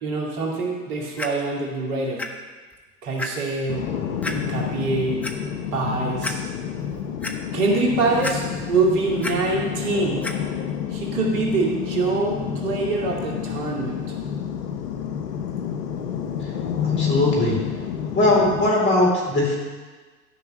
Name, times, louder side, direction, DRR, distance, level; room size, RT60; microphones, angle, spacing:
voice 1, 0.0-2.2 3.0-3.9 4.3-5.3 5.7-6.4 7.5-10.4 10.9-14.0, right 3 dB, 55° right, -1 dB, 2.4 m, -24 dB
Clock, 1.2-1.3 2.2-2.3 2.7-2.8 3.2-3.3 4.2-4.4 5.0-5.3 5.8-5.9 6.2-6.3 6.8-7.3 8.2-8.7 9.0-9.3 10.2-10.3 11.1-11.2, left 2 dB, 5° left, 0.4 m, -30 dB
sound 1, 3.7-18.7, left 8 dB, 80° left, 0.9 m, -29 dB
voice 2, 16.8-17.6 18.1-19.6, left 1 dB, 25° left, -3 dB, 3.7 m, -20 dB
12.5 x 5.7 x 6.4 m, 1.4 s
figure-of-eight pair, 90°, 48 cm